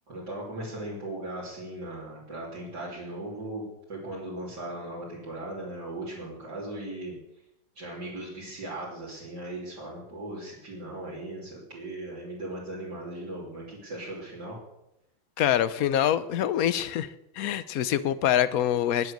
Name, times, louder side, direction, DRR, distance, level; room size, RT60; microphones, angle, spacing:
voice 1, 0.1-7.1 7.8-14.6, right 1 dB, 60° right, -6 dB, 3.7 m, -38 dB
voice 2, 15.4-17.1 17.4-19.1, left 10 dB, 60° left, 14 dB, 1.1 m, -25 dB
20.0 x 7.7 x 6.6 m, 0.87 s
omnidirectional pair, 2.0 m